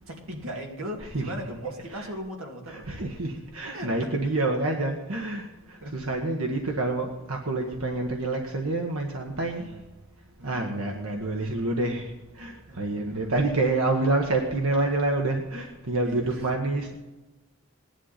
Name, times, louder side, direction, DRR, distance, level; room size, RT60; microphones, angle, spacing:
voice 1, 0.1-2.9 3.7-4.1 5.8-6.0 9.6-9.8 10.4-10.9 12.7-13.4 16.0-16.5, equal, 70° right, 2.4 m, -38 dB
voice 2, 2.7-9.6 10.4-12.1 12.4-16.9, right 2 dB, 85° right, 1.6 m, -28 dB
19.5 x 11.0 x 4.3 m
head